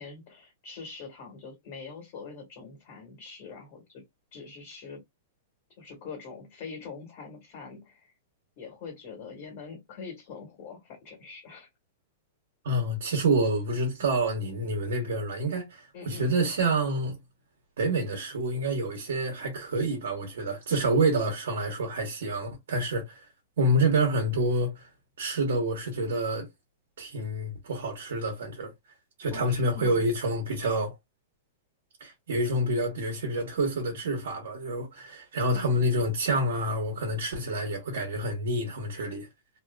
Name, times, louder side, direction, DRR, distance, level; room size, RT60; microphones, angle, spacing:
voice 1, 0.0-4.0 4.3-5.0 5.8-8.1 8.6-11.7 15.9-16.3 29.3-30.0 35.5-35.8, left 5 dB, 40° left, 1.2 m, -44 dB
voice 2, 12.6-17.2 17.8-23.2 23.6-24.9 25.2-26.5 27.0-28.7 29.2-30.9 32.0-39.3, right 1 dB, 80° right, 0.9 m, -28 dB
2.6 x 2.4 x 2.2 m
supercardioid pair, 175°, 0 cm